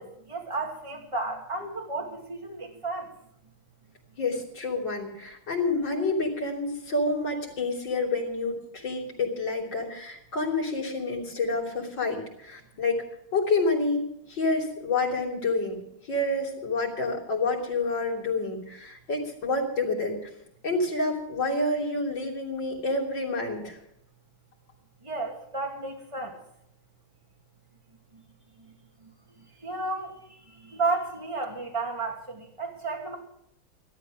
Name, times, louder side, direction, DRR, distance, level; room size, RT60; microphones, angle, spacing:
voice 1, 0.0-3.1 25.0-26.4 28.1-28.2 28.6-28.7 29.0-33.2, right 3 dB, 15° right, 0 dB, 2.5 m, -33 dB
voice 2, 4.2-13.0 13.3-14.0 14.3-15.8 16.1-20.2 20.6-23.8, left 2 dB, 60° left, -1 dB, 3.8 m, -28 dB
14.0 x 12.5 x 6.3 m, 0.74 s
omnidirectional pair, 2.2 m